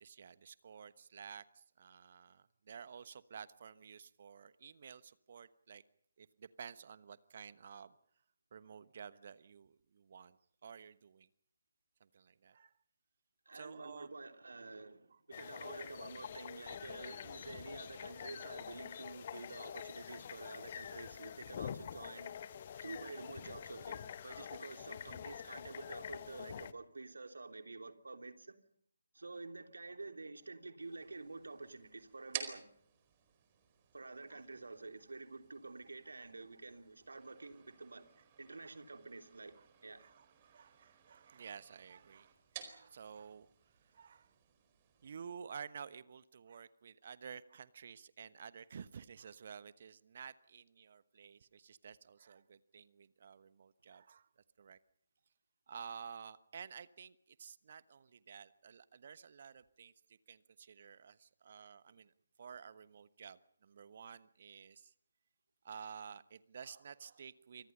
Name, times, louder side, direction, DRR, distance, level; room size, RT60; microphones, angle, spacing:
voice 1, 0.0-5.8 6.2-7.9 8.5-10.4 10.6-11.3 12.0-12.7 13.5-14.1 34.3-34.4 38.6-38.7 39.6-39.7 40.0-43.5 43.9-44.3 45.0-54.3 54.6-54.8 55.7-62.1 62.4-64.9 65.6-67.7, right 7 dB, 40° right, 1.1 m, -52 dB
voice 2, 13.4-22.3 22.8-28.5 29.1-32.7 33.9-38.1 38.4-39.5 39.8-40.0, right 3 dB, 65° right, 3.2 m, -49 dB
sound 1, 15.3-26.7, left 8 dB, 35° left, 1.2 m, -47 dB
sound 2, 30.8-45.2, right 10 dB, 25° right, 4.5 m, -53 dB
28.0 x 26.0 x 5.5 m
figure-of-eight pair, 145°, 0 cm